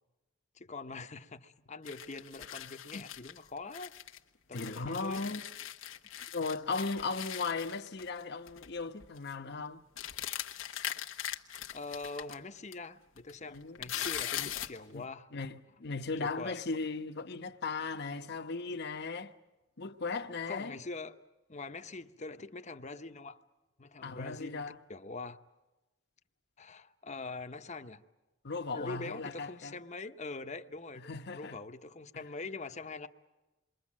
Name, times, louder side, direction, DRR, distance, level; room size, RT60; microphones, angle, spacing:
voice 1, 0.5-3.9 4.5-5.2 11.2-11.3 11.7-15.3 16.2-16.6 20.5-21.2 21.5-23.4 23.8-25.4 26.6-28.0 28.7-33.1, left 3 dB, 35° left, 1.0 m, -43 dB
sound 1, 1.9-4.2 4.5-8.2 8.5-8.7 9.0-9.3 10.0-12.4 12.7-12.8 13.2-14.8, left 11 dB, 90° left, 1.2 m, -40 dB
voice 2, 4.5-5.4 6.3-9.8 13.5-13.9 14.4-14.5 14.9-19.3 19.8-20.8 24.0-24.8 28.4-29.8 31.0-31.6 32.1-32.2, left 4 dB, 60° left, 1.1 m, -37 dB
28.0 x 23.0 x 7.5 m
head